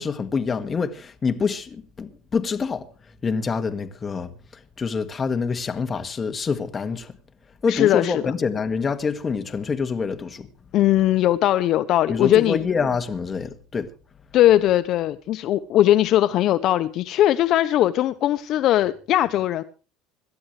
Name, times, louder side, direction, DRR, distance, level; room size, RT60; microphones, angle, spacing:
voice 1, 0.0-2.9 3.2-4.3 4.8-7.1 7.6-10.5 12.1-13.9, left 5 dB, 20° left, 1.8 m, -26 dB
voice 2, 7.7-8.3 10.7-12.6 14.3-19.6, left 13 dB, 45° left, 0.8 m, -19 dB
26.5 x 12.5 x 3.2 m
cardioid pair, 145°, 0 cm